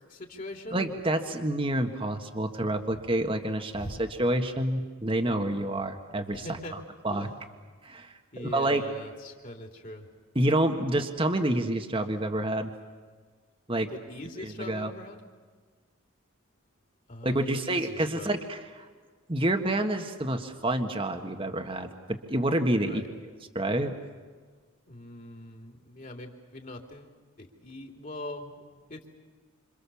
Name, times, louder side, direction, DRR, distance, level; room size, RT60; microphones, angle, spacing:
voice 1, 0.1-0.9 3.8-4.0 6.3-6.7 7.1-7.4 8.3-10.1 13.9-15.2 17.1-18.3 22.8-23.0 24.9-27.1 27.4-28.6 28.9-29.0, left 1 dB, 40° left, 3 dB, 3.4 m, -42 dB
voice 2, 0.7-7.3 7.8-8.8 10.3-12.7 13.7-13.9 14.4-14.9 17.2-18.9 19.3-23.0 23.5-23.9, right 1 dB, 25° right, 5 dB, 1.6 m, -28 dB
28.0 x 27.0 x 7.1 m, 1.5 s
head